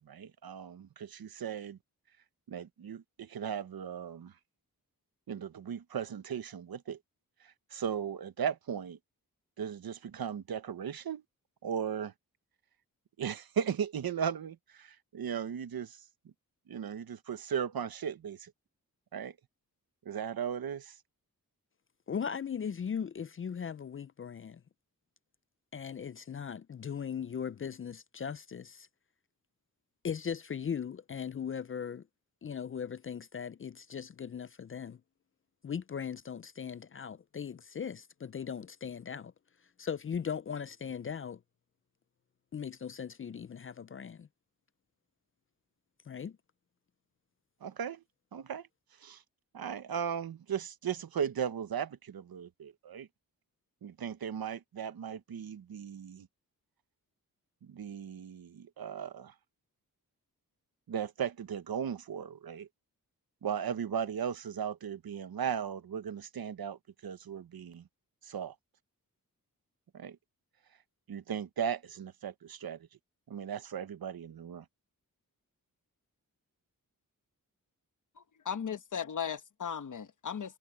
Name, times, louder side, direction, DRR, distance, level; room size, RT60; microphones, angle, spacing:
voice 1, 0.0-1.8 2.5-4.3 5.3-7.0 7.4-9.0 9.6-11.2 11.6-12.1 13.2-16.0 16.7-18.5 19.1-19.3 20.0-21.0 47.6-48.0 48.3-48.7 49.0-49.2 49.5-53.1 53.8-56.3 57.6-59.3 60.9-62.7 63.4-67.8 68.2-68.5 69.9-70.2 71.1-72.9 73.3-74.6, right 8 dB, 85° right, 1.2 m, -37 dB
voice 2, 22.1-24.6 25.7-28.9 30.0-32.1 32.4-35.0 35.6-39.3 39.8-41.4 42.5-44.3 46.1-46.4, left 7 dB, 40° left, 0.4 m, -38 dB
voice 3, 78.2-80.6, left 7 dB, 60° left, 1.2 m, -37 dB
wide cardioid pair, 140°, 35 cm